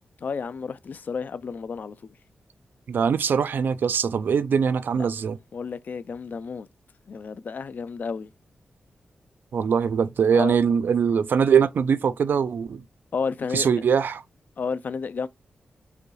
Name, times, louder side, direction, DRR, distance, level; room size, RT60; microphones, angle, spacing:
voice 1, 0.2-1.9 5.0-5.1 5.5-6.7 7.1-8.3 10.3-10.6 13.1-13.7 14.6-15.3, left 5 dB, 55° left, 0.4 m, -31 dB
voice 2, 2.9-5.4 9.5-12.8 13.5-14.2, right 6 dB, 70° right, 0.4 m, -22 dB
4.8 x 2.3 x 3.2 m
wide cardioid pair, 95°, 4 cm